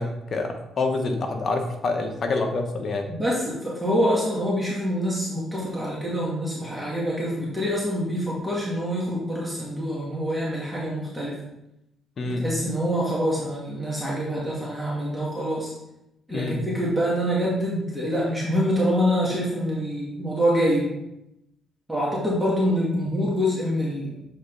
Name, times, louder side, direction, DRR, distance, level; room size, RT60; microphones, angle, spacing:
voice 1, 0.0-3.1 12.2-12.4 16.3-16.6, left 3 dB, 50° left, 4 dB, 1.1 m, -27 dB
voice 2, 3.1-11.4 12.3-15.7 16.3-20.9 21.9-24.2, equal, 10° right, -6 dB, 1.9 m, -25 dB
7.6 x 4.1 x 3.9 m, 0.86 s
cardioid pair, 90°, 0 cm